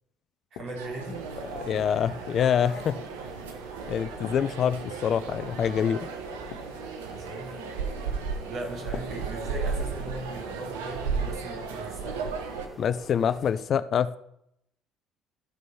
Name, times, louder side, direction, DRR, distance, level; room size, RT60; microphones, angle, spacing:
sound 1, 0.5-1.1 1.7-2.6 3.2-3.5 4.2-5.4 5.7-5.9 6.3-7.6 8.8-10.6 10.9-11.2 12.3-12.5, left 8 dB, 70° left, 0.9 m, -47 dB
voice 1, 0.5-1.3 7.1-7.6 8.5-12.6, right 1 dB, 55° right, 0 dB, 3.7 m, -39 dB
sound 2, 0.7-12.7, right 5 dB, 85° right, 1.1 m, -35 dB
sound 3, 1.1-13.6, right 2 dB, 20° right, 3.6 m, -46 dB
voice 2, 1.6-3.0 3.9-6.1 12.8-14.2, left 8 dB, 50° left, 15 dB, 0.5 m, -26 dB
13.0 x 5.3 x 5.6 m, 0.75 s
hypercardioid pair, 60°, 0 cm